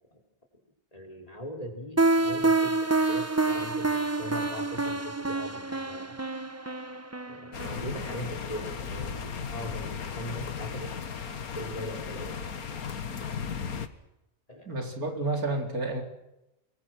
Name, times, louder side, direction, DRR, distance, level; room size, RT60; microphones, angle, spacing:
voice 1, 0.9-6.2 7.3-10.9 11.5-12.4 14.5-14.7, equal, 25° left, 4 dB, 5.0 m, -40 dB
sound 1, 2.0-8.7, right 3 dB, 10° right, 0.9 m, -28 dB
sound 2, 7.5-13.9, left 6 dB, 85° left, 1.9 m, -36 dB
voice 2, 14.7-16.0, right 2 dB, 85° right, 3 dB, 4.4 m, -30 dB
24.0 x 23.0 x 6.3 m, 0.93 s
omnidirectional pair, 1.5 m